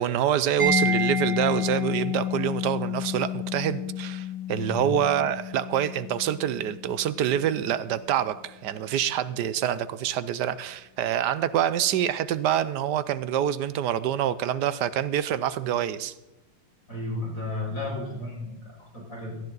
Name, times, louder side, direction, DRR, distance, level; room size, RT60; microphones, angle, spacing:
voice 1, 0.0-16.1, right 10 dB, 70° right, 1.2 m, -26 dB
Mallet percussion, 0.6-8.1, left 4 dB, 55° right, 5.4 m, -30 dB
voice 2, 4.5-4.8 16.9-19.4, left 2 dB, 45° left, 6.7 m, -33 dB
18.0 x 13.0 x 4.0 m
omnidirectional pair, 2.1 m